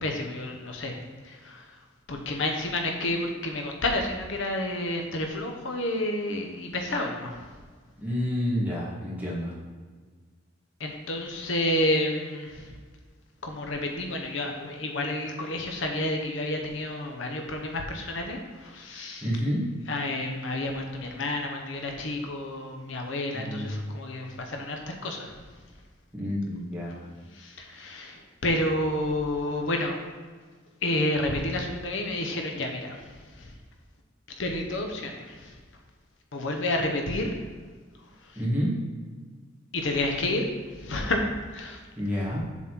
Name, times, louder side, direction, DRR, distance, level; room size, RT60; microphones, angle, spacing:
voice 1, 0.0-1.0 1.3-1.6 2.1-7.3 10.8-12.7 13.4-19.2 19.9-25.3 27.4-30.0 30.8-33.0 33.4-33.5 34.4-35.5 36.3-37.3 39.7-40.4 40.8-41.2 41.5-41.8, left 1 dB, 65° left, 2 dB, 0.9 m, -30 dB
voice 2, 8.0-9.5 19.2-19.6 23.3-23.9 26.1-27.0 38.4-38.7 42.0-42.4, equal, 10° right, -6 dB, 2.0 m, -29 dB
7.3 x 4.1 x 6.1 m, 1.5 s
head